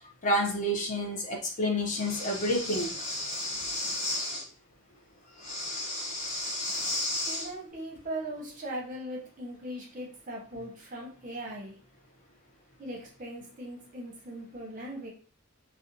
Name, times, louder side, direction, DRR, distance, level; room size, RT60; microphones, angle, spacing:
voice 1, 0.2-2.9, equal, 35° left, 1 dB, 0.4 m, -29 dB
Breathing, 1.9-4.4 5.4-7.5, left 2 dB, 85° left, 1.0 m, -33 dB
voice 2, 7.2-11.8 12.8-15.1, right 1 dB, 40° right, -2 dB, 0.7 m, -39 dB
2.5 x 2.1 x 2.6 m, 0.39 s
head